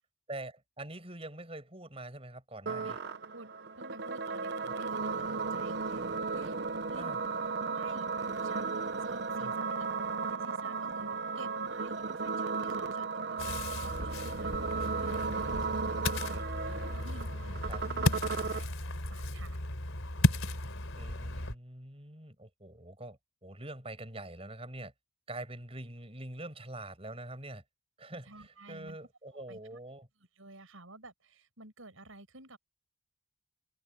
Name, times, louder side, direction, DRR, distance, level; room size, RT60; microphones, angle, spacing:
voice 1, 0.3-3.0 4.7-5.0 7.0-7.2 9.4-9.5 17.7-17.8 21.0-24.9 25.3-27.6 28.0-30.1, right 1 dB, 30° right, 7.6 m, -45 dB
sound 1, 2.7-18.7, right 4 dB, 55° right, 0.9 m, -35 dB
voice 2, 3.8-6.6 6.9-9.5 10.2-19.6 28.3-29.0 29.3-29.8 30.4-32.6, right 2 dB, 85° right, 6.8 m, -52 dB
Ocean, 13.4-21.6, left 1 dB, 90° left, 3.6 m, -34 dB
head